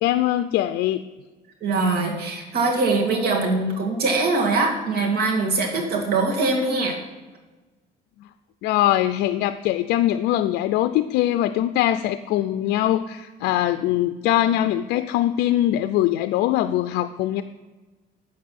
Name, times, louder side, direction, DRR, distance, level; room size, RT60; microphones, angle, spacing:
voice 1, 0.0-1.0 8.6-17.4, left 13 dB, 85° left, 11 dB, 0.4 m, -22 dB
voice 2, 1.6-7.0, right 3 dB, 65° right, 0 dB, 2.3 m, -22 dB
8.4 x 7.4 x 5.9 m, 1.2 s
cardioid pair, 110°, 17 cm